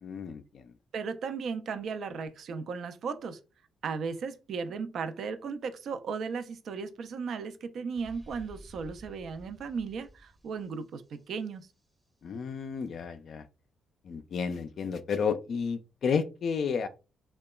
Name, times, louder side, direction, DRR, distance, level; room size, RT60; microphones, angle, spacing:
voice 1, 0.0-0.7 12.2-13.4 14.0-16.9, left 6 dB, 60° left, 0.3 m, -32 dB
voice 2, 0.9-3.4 3.8-11.7, right 5 dB, 65° right, 0.3 m, -36 dB
sound 1, 8.0-11.7, right 1 dB, 20° right, 0.7 m, -53 dB
2.8 x 2.1 x 2.2 m
cardioid pair, 90°, 0 cm